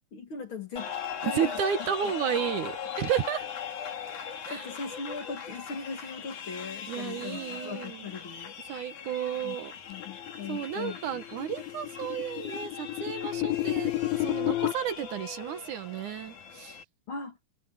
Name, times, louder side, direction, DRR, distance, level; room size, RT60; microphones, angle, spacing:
voice 1, 0.1-0.9 1.2-1.6 2.0-2.1 4.0-8.5 9.4-9.6 9.9-11.0 17.1-17.4, left 5 dB, 40° left, 2.3 m, -39 dB
sound 1, 0.8-16.8, left 7 dB, 60° left, 4.2 m, -40 dB
voice 2, 1.2-3.5 4.5-4.7 6.9-8.1 8.7-9.7 10.5-16.8, right 9 dB, 65° right, 2.5 m, -32 dB
sound 2, 10.0-14.7, left 15 dB, 85° left, 2.4 m, -31 dB
omnidirectional pair, 4.0 m